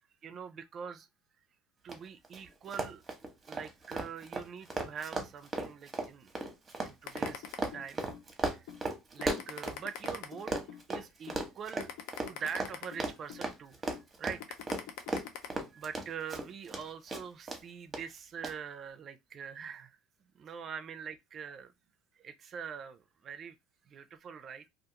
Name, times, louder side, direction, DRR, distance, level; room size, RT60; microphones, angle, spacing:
voice 1, 0.2-1.1 1.8-3.0 3.5-6.3 6.8-7.5 7.7-8.0 8.5-10.5 10.9-11.9 12.2-13.9 14.2-14.6 15.7-20.0 20.3-21.7 22.2-23.6 23.9-24.7, right 7 dB, 40° right, 0.4 m, -44 dB
Run, 1.9-2.0 2.2-2.4 2.7-10.2 10.5-16.8 17.1-17.6 17.9-18.0 18.4-18.5, right 2 dB, 20° right, 0.8 m, -36 dB
sound 1, 7.1-8.2 8.7-8.8 9.2-10.8 11.3-11.4 11.8-13.4 13.9-14.0 14.4-15.5, left 9 dB, 70° left, 0.6 m, -43 dB
2.4 x 2.3 x 2.8 m
supercardioid pair, 100°, 0 cm